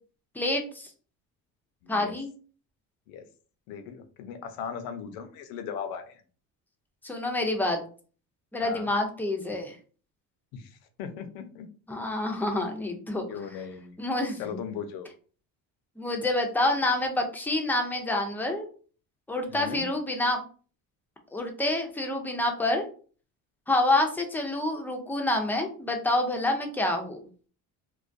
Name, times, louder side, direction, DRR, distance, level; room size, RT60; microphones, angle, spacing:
voice 1, 0.3-0.9 1.9-2.3 7.0-7.8 8.5-9.8 11.9-13.2 14.0-14.6 16.0-18.7 19.3-20.4 21.3-22.9 23.7-27.2, left 2 dB, 5° left, 3 dB, 0.3 m, -27 dB
voice 2, 1.8-2.1 3.1-3.3 3.7-6.2 8.6-8.9 10.5-11.7 13.3-13.9 14.4-15.1 19.5-19.9, left 7 dB, 90° left, 8 dB, 0.5 m, -38 dB
2.2 x 2.2 x 2.5 m, 0.41 s
cardioid pair, 120°, 34 cm